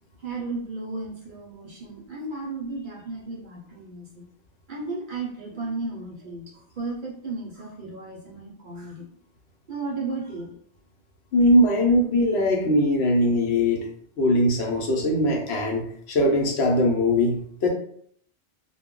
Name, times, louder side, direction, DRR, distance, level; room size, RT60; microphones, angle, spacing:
voice 1, 0.2-4.2 4.7-9.1 9.7-10.5, right 3 dB, 55° right, -2 dB, 0.6 m, -34 dB
voice 2, 11.3-13.9 14.2-17.7, left 1 dB, 65° left, 0 dB, 0.9 m, -21 dB
2.2 x 2.0 x 3.6 m, 0.64 s
omnidirectional pair, 1.2 m